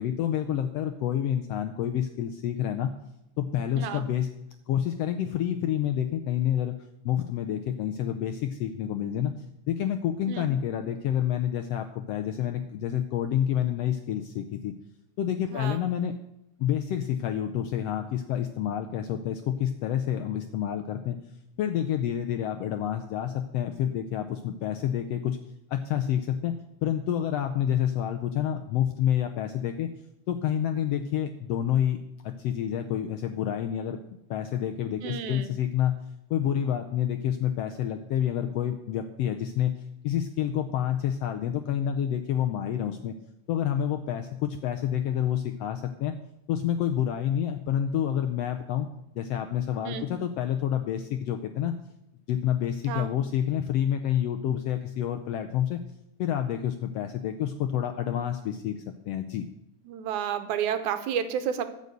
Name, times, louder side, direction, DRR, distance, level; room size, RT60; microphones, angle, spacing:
voice 1, 0.0-2.9 3.4-4.3 4.7-6.8 7.0-9.3 9.7-14.7 15.2-16.1 16.6-21.2 21.6-25.4 25.7-26.5 26.8-29.9 30.3-32.0 32.2-34.0 34.3-35.9 36.3-39.7 40.0-43.1 43.5-46.1 46.5-48.9 49.1-51.7 52.3-55.8 56.2-59.5, left 10 dB, 80° left, 6 dB, 1.4 m, -28 dB
voice 2, 15.5-15.8 35.0-35.5 49.9-50.1 52.9-53.1 59.9-61.7, right 8 dB, 80° right, 10 dB, 2.2 m, -31 dB
13.5 x 5.4 x 8.0 m, 0.86 s
omnidirectional pair, 3.5 m